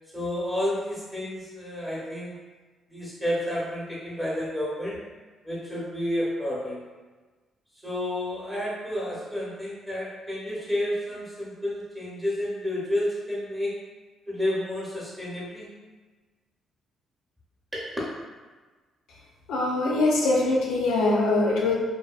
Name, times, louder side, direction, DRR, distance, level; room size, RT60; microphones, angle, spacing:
voice 1, 0.1-2.4 2.9-5.0 5.4-6.8 7.8-13.8 14.3-15.7 17.7-18.0, left 1 dB, 10° right, -7 dB, 0.8 m, -30 dB
voice 2, 19.5-21.7, left 2 dB, 90° left, -3 dB, 0.5 m, -23 dB
2.7 x 2.2 x 2.3 m, 1.3 s
cardioid pair, 90°, 0 cm